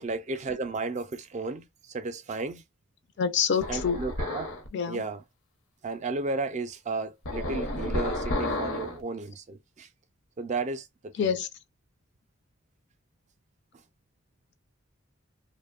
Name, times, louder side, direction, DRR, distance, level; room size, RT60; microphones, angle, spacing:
voice 1, 0.0-2.6 3.7-4.5 4.9-5.2 5.8-9.9 10.4-11.3, right 3 dB, 35° right, 0.4 m, -33 dB
voice 2, 3.2-4.1 4.7-5.1 11.1-11.5, left 7 dB, 60° left, 0.4 m, -27 dB
sound 1, 3.6-4.7 7.3-9.0, left 1 dB, 90° left, 0.8 m, -31 dB
2.7 x 2.1 x 2.3 m
head